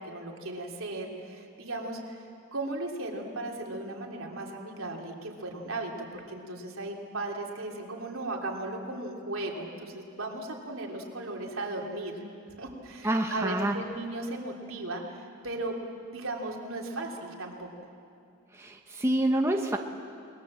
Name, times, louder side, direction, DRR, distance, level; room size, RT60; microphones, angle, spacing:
voice 1, 0.1-2.2 2.5-12.2 12.6-17.7, right 2 dB, 75° right, 0 dB, 3.3 m, -36 dB
voice 2, 13.0-13.8 18.5-19.8, right 1 dB, 10° right, 2 dB, 1.0 m, -27 dB
28.0 x 20.5 x 7.6 m, 2.5 s
head